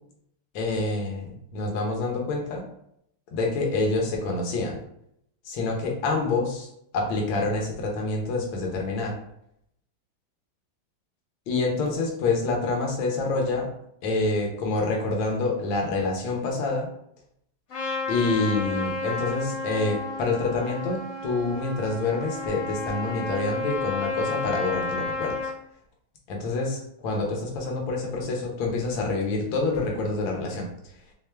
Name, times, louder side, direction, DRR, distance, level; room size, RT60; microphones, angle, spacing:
voice 1, 0.5-1.3 1.5-2.6 3.3-4.8 5.4-6.7 6.9-9.1 11.5-13.7 14.0-16.9 18.1-25.3 26.3-30.7, left 3 dB, 70° left, 0 dB, 1.6 m, -27 dB
Trumpet, 17.7-25.5, left 3 dB, 55° left, 1.8 m, -32 dB
3.7 x 3.6 x 3.3 m, 0.74 s
omnidirectional pair, 2.3 m